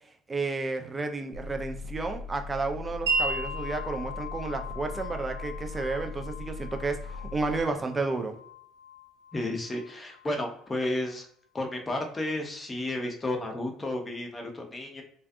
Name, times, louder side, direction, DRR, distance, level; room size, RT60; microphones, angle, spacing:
voice 1, 0.3-8.4, right 3 dB, 25° right, 5 dB, 0.5 m, -32 dB
sound 1, 1.3-7.6, left 3 dB, 70° left, 0.4 m, -39 dB
Wind chime, 3.1-10.7, right 2 dB, 85° right, 0.6 m, -36 dB
voice 2, 9.3-11.3 11.5-15.0, left 1 dB, 25° left, 2 dB, 0.7 m, -32 dB
2.5 x 2.4 x 2.3 m, 0.63 s
hypercardioid pair, 55°, 0 cm